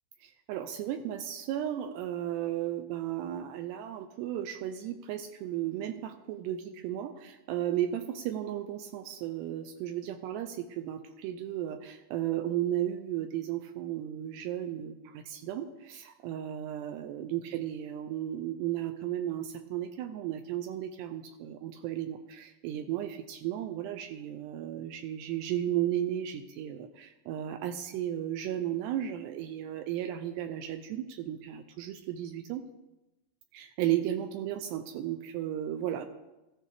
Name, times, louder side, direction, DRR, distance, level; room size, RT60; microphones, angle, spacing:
voice 1, 0.2-32.6 33.5-36.1, right 11 dB, 85° right, 8 dB, 2.5 m, -34 dB
14.5 x 13.5 x 3.4 m, 0.99 s
omnidirectional pair, 5.3 m